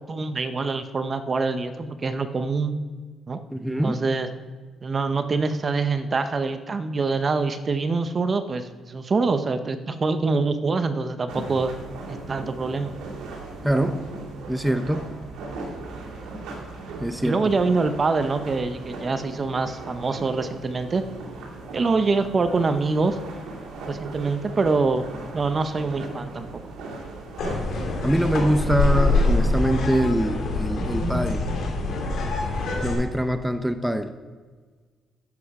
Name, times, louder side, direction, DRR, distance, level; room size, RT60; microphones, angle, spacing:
voice 1, 0.1-2.7 3.3-3.4 3.8-4.3 4.8-11.7 12.1-12.9 17.2-21.0 21.7-23.2 23.9-25.0 25.3-26.6, right 4 dB, 35° right, 10 dB, 0.8 m, -25 dB
voice 2, 3.5-4.0 13.6-14.0 14.5-15.1 17.0-17.4 28.0-31.4 32.8-34.2, right 1 dB, 5° right, 9 dB, 0.6 m, -24 dB
sound 1, 11.3-29.4, right 3 dB, 85° right, 2.6 m, -38 dB
sound 2, 27.4-32.9, left 3 dB, 70° left, 3.1 m, -24 dB
12.0 x 7.9 x 4.8 m, 1.5 s
cardioid pair, 90°, 0 cm